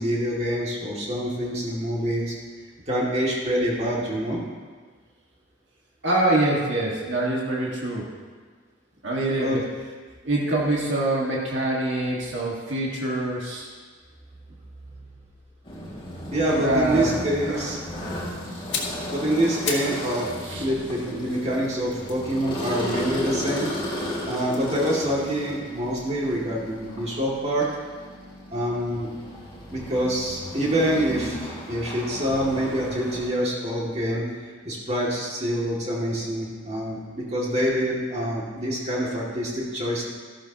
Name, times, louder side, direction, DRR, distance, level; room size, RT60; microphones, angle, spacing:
voice 1, 0.0-2.3 2.9-4.4 9.4-9.6 16.3-17.8 19.1-23.7 24.3-27.7 28.5-29.1 29.7-34.2 34.6-40.0, equal, 35° right, -5 dB, 2.4 m, -26 dB
voice 2, 6.0-8.1 9.0-9.6 10.2-13.7 16.6-17.2 17.5-17.6 18.5-18.7 20.4-20.7, right 2 dB, 70° right, -4 dB, 1.9 m, -25 dB
sound 1, 15.7-33.3, left 1 dB, 25° left, 3.5 m, -35 dB
sound 2, 18.5-20.0 20.3-23.6 24.4-26.5 26.7-26.9, left 5 dB, 70° left, 1.8 m, -37 dB
14.0 x 12.0 x 3.0 m, 1.5 s
head